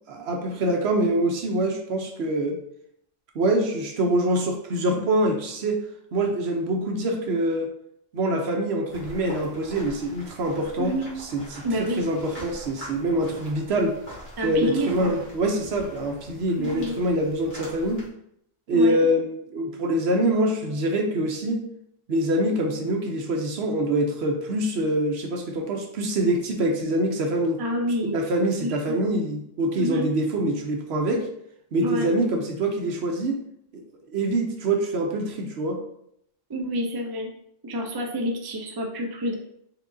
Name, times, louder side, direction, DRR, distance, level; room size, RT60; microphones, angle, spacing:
voice 1, 0.1-2.6 3.3-5.8 6.1-7.7 8.1-11.0 11.3-11.5 12.0-13.9 14.4-18.0 18.7-21.7 22.1-27.6 28.1-31.2 31.7-33.4 33.7-33.8 34.1-35.8, right 1 dB, 60° right, 3 dB, 0.9 m, -25 dB
sound 1, 8.9-18.1, equal, 40° left, 1.7 m, -43 dB
voice 2, 10.8-11.1 11.6-12.0 14.4-15.1 16.6-17.0 18.7-19.0 27.6-28.2 28.6-29.2 29.8-30.1 31.8-32.1 36.5-37.3 37.6-39.3, equal, 40° right, 1 dB, 0.3 m, -28 dB
4.6 x 3.6 x 2.6 m, 0.72 s
omnidirectional pair, 1.3 m